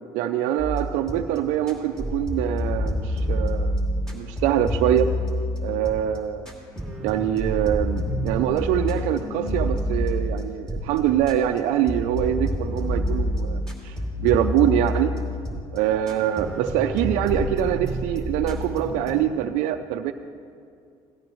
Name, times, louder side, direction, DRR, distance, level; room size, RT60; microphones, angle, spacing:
voice 1, 0.1-3.8 4.1-5.1 5.6-6.5 7.0-15.2 15.7-20.1, right 11 dB, 90° right, 6 dB, 0.4 m, -24 dB
sound 1, 0.6-1.4 1.7-6.2 6.5-11.6 11.9-15.8 16.1-19.1, equal, 5° left, 2.3 m, -28 dB
17.5 x 13.0 x 3.1 m, 2.4 s
cardioid pair, 100°, 12 cm